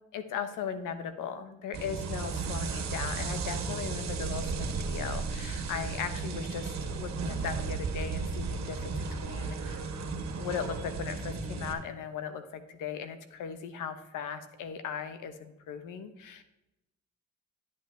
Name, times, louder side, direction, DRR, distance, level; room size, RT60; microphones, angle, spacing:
voice 1, 0.1-9.8 10.4-16.4, left 7 dB, 85° left, 10 dB, 1.1 m, -38 dB
sound 1, 1.7-11.7, right 4 dB, 60° right, 1.7 m, -34 dB
11.0 x 8.0 x 3.4 m, 0.94 s
cardioid pair, 85°, 31 cm